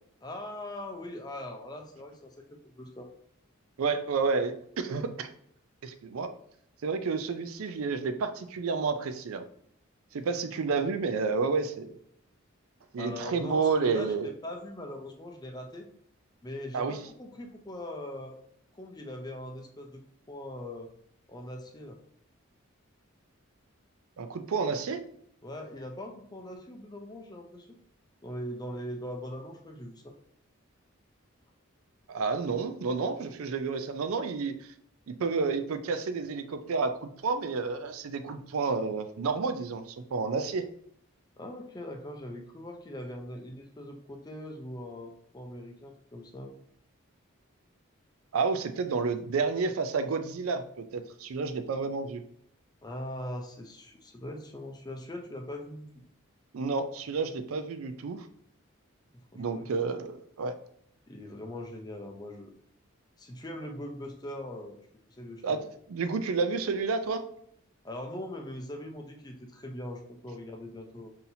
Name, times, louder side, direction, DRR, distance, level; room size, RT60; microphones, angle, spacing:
voice 1, 0.2-3.1 13.0-15.9 16.4-18.4 18.7-20.0 20.3-20.9 21.3-22.0 25.4-27.8 28.2-30.1 41.4-46.5 52.8-56.0 59.1-59.7 61.1-62.5 63.2-64.8 65.0-65.7 67.8-71.1, left 1 dB, 20° left, 3 dB, 0.5 m, -41 dB
voice 2, 3.8-5.3 5.8-6.3 6.8-9.4 10.1-11.9 12.9-14.3 16.7-17.0 24.2-25.0 32.1-34.5 35.1-40.6 48.3-52.2 56.5-58.2 59.4-60.5 65.4-65.6 65.9-67.2, right 4 dB, 85° right, 9 dB, 0.4 m, -30 dB
5.6 x 2.7 x 2.7 m, 0.68 s
head